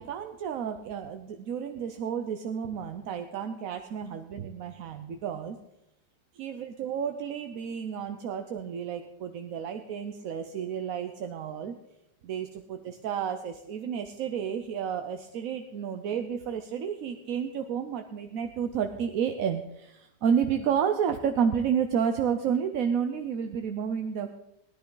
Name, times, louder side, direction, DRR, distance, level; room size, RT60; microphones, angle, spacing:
voice 1, 0.0-5.6 6.3-11.7 12.2-24.3, right 7 dB, 60° right, 7 dB, 1.0 m, -31 dB
19.5 x 10.5 x 3.8 m, 0.89 s
omnidirectional pair, 1.9 m